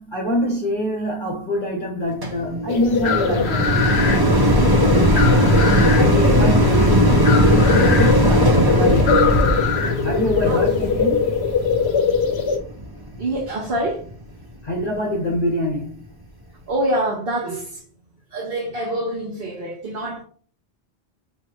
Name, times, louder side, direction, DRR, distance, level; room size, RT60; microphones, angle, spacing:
voice 1, 0.0-4.6 5.1-9.6 10.0-11.3 14.6-16.0, equal, 50° left, 1.3 m, -25 dB
sound 1, 2.2-13.5 14.1-14.2, equal, 25° right, 0.6 m, -18 dB
sound 2, 2.7-12.6, left 6 dB, 75° left, 1.0 m, -21 dB
voice 2, 4.6-5.1 10.5-10.7 13.2-14.1 16.7-17.8 18.3-20.2, right 1 dB, 60° right, 1.2 m, -26 dB
5.7 x 2.7 x 3.0 m
omnidirectional pair, 1.1 m